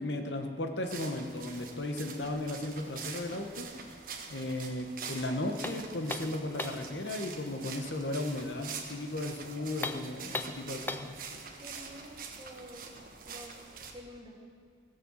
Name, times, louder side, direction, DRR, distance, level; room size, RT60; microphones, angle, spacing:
voice 1, 0.0-3.7 4.3-11.4, left 1 dB, 85° left, 5 dB, 1.3 m, -35 dB
sound 1, 0.8-13.9, right 5 dB, 50° right, 1.4 m, -45 dB
sound 2, 5.6-6.9 9.7-11.2, left 2 dB, 10° left, 0.4 m, -38 dB
voice 2, 11.6-12.9 13.3-13.6 13.9-14.4, equal, 25° right, 0 dB, 1.8 m, -49 dB
17.5 x 6.9 x 7.4 m, 2.2 s
head